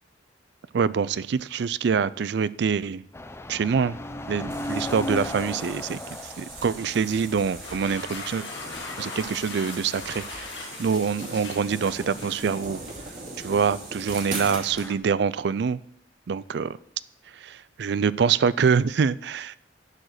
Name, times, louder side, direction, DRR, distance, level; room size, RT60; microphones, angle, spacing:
voice 1, 0.7-3.0 3.5-4.0 4.3-6.0 6.4-8.5 9.0-12.8 13.4-15.8 16.3-16.8 17.3-19.6, right 6 dB, 65° right, 0.4 m, -25 dB
sound 1, 3.1-10.2 10.5-10.6 11.2-11.7 12.1-12.2 14.2-14.9, left 1 dB, 15° left, 0.5 m, -37 dB
sound 2, 4.5-14.9, right 3 dB, 40° right, 2.5 m, -40 dB
sound 3, 7.5-13.1, left 4 dB, 80° left, 1.7 m, -40 dB
11.5 x 5.0 x 6.5 m
head